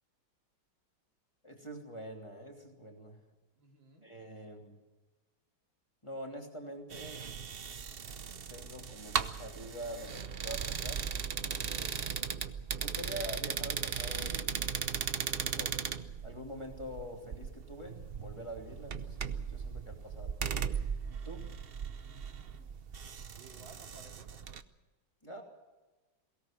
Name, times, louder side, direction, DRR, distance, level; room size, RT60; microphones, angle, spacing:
voice 1, 1.4-3.2 4.0-4.8 6.0-7.2 8.5-11.1 11.3-12.0 12.8-14.5 14.9-15.7 16.2-20.3 21.2-21.4 25.2-25.4, equal, 15° left, 1 dB, 3.0 m, -45 dB
voice 2, 3.6-4.1 23.3-24.6, right 3 dB, 70° right, 2 dB, 3.4 m, -57 dB
sound 1, 6.9-24.6, right 7 dB, 55° right, 0.6 m, -38 dB
22.5 x 17.5 x 7.4 m, 1.2 s
omnidirectional pair, 2.2 m